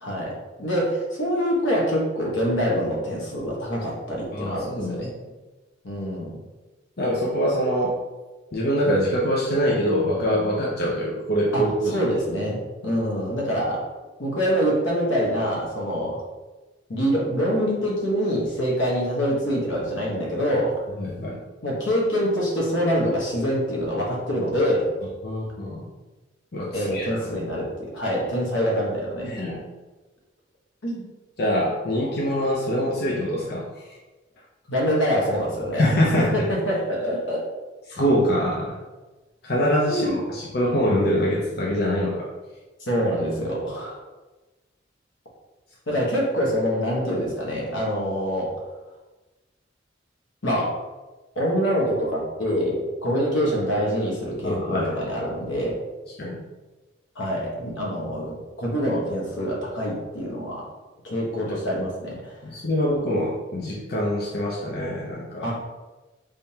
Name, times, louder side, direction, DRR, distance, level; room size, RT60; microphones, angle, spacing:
voice 1, 0.0-5.1 5.8-6.4 11.5-13.8 14.2-16.2 16.9-20.8 21.6-24.9 26.7-29.4 30.8-31.0 34.7-35.8 36.3-37.4 39.9-40.2 42.8-44.0 45.9-48.5 50.4-50.7 51.3-55.8 57.2-60.6 61.0-62.2 65.4-65.5, equal, 85° left, -3 dB, 1.1 m, -25 dB
voice 2, 4.3-5.1 7.0-8.0 8.5-12.0 21.0-21.4 25.2-25.9 26.5-27.2 29.2-29.6 31.4-33.7 35.7-36.4 37.9-38.7 39.4-42.3 54.4-54.9 56.2-56.4 61.5-61.6 62.4-65.5, equal, 55° left, -5 dB, 0.6 m, -24 dB
3.6 x 3.4 x 2.8 m, 1.2 s
head